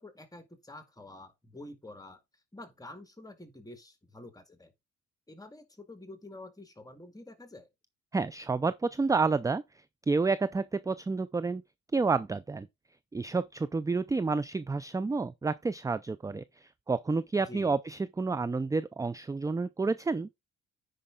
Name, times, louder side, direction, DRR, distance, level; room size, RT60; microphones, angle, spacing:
voice 1, 0.0-2.2 2.5-4.7 5.3-7.7 17.4-17.8, left 2 dB, 10° left, 2.1 m, -48 dB
voice 2, 8.1-9.6 10.1-11.6 11.9-12.7 13.1-20.3, right 4 dB, 10° right, 0.4 m, -29 dB
9.7 x 5.0 x 3.7 m
cardioid pair, 90°, 30 cm